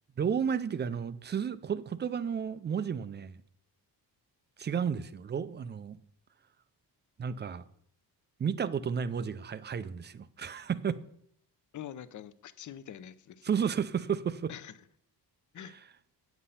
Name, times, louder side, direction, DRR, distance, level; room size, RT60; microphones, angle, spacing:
voice 1, 0.2-3.4 4.6-6.0 7.2-7.6 8.4-11.0 13.4-14.5, right 7 dB, 25° right, 0.4 m, -32 dB
voice 2, 11.7-13.6 14.5-14.7 15.5-15.8, left 10 dB, 45° left, 0.6 m, -45 dB
8.8 x 8.2 x 5.6 m
cardioid pair, 155°, 42 cm